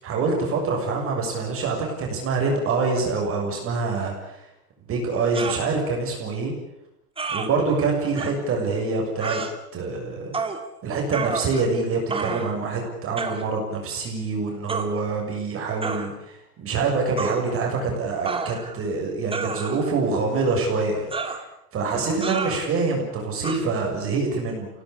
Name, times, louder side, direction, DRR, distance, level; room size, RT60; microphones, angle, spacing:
voice 1, 0.0-4.5 4.9-6.5 7.3-9.4 9.7-10.3 10.8-21.4 21.7-24.7, right 4 dB, 30° right, 0 dB, 6.9 m, -25 dB
sound 1, 5.3-5.6 7.2-7.5 8.2-8.3 9.2-9.5 10.3-10.6 11.1-11.7 12.1-12.5 13.2-13.4 14.7-14.9 15.8-16.1 17.2-17.4 18.3-18.8 19.3-19.9 21.1-21.4 22.2-22.6 23.4-23.6, right 4 dB, 10° right, 2.6 m, -29 dB
26.5 x 18.0 x 8.6 m, 0.84 s
hypercardioid pair, 120°, 47 cm